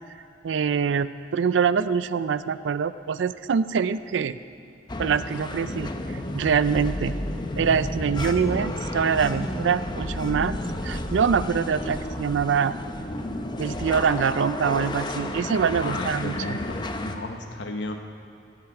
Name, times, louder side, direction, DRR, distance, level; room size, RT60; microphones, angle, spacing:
voice 1, 0.4-4.4 5.0-5.9 6.3-7.1 7.6-12.7 13.6-16.3, right 6 dB, 85° right, 15 dB, 0.4 m, -24 dB
sound 1, 4.9-17.2, left 1 dB, 25° left, 0.7 m, -31 dB
voice 2, 15.8-18.0, left 2 dB, 70° left, 5 dB, 0.9 m, -34 dB
13.5 x 8.1 x 8.6 m, 2.5 s
head